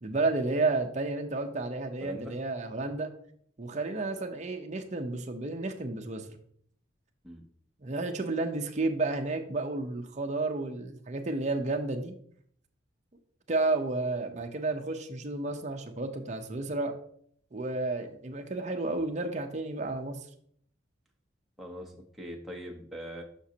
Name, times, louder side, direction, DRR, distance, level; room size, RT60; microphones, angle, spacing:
voice 1, 0.0-3.1 3.6-6.3 7.8-12.1 13.5-17.0 17.5-20.3, right 2 dB, 35° right, 4 dB, 0.6 m, -31 dB
voice 2, 2.0-2.4 7.2-7.5 21.6-23.2, equal, ahead, -1 dB, 0.8 m, -42 dB
6.1 x 5.9 x 2.7 m, 0.64 s
head